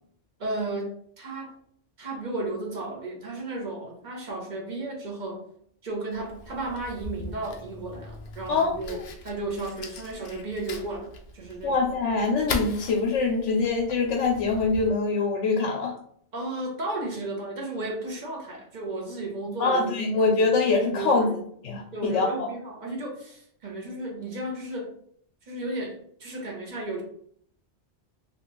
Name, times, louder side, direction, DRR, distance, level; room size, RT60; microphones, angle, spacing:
voice 1, 0.4-1.5 2.0-5.4 5.8-11.8 16.3-20.5 20.9-21.4 21.9-24.9 25.5-27.0, right 2 dB, 45° right, 0 dB, 0.8 m, -34 dB
Fire, 6.1-14.9, left 3 dB, 60° left, 0.6 m, -40 dB
voice 2, 8.5-9.0 11.6-15.9 19.6-21.3 21.6-22.5, left 3 dB, 80° left, 0 dB, 0.9 m, -24 dB
2.9 x 2.4 x 2.9 m, 0.63 s
omnidirectional pair, 1.2 m